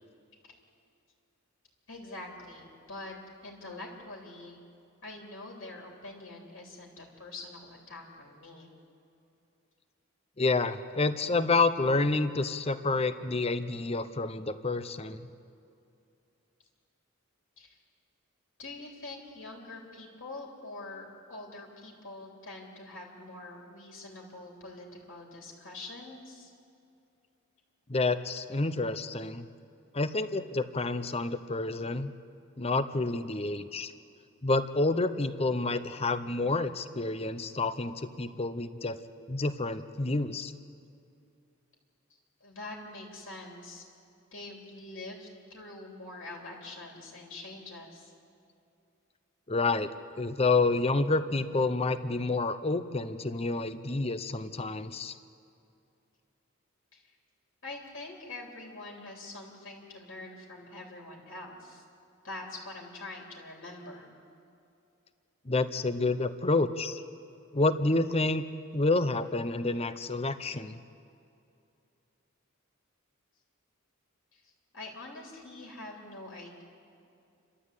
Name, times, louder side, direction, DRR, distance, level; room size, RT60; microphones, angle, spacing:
voice 1, 1.9-3.1 3.4-4.6 5.0-8.7 17.6-17.8 18.6-26.5 42.4-43.8 44.3-48.1 56.9-57.1 57.6-61.8 62.2-64.1 74.3-76.6, left 2 dB, 60° left, -1 dB, 3.2 m, -45 dB
voice 2, 10.4-15.3 27.9-29.5 29.9-32.1 32.6-33.9 34.4-39.0 39.3-40.5 49.5-49.9 50.2-55.2 65.4-67.0 67.5-68.5 68.7-70.8, left 3 dB, 30° left, 12 dB, 0.7 m, -29 dB
29.0 x 13.0 x 8.3 m, 2.6 s
head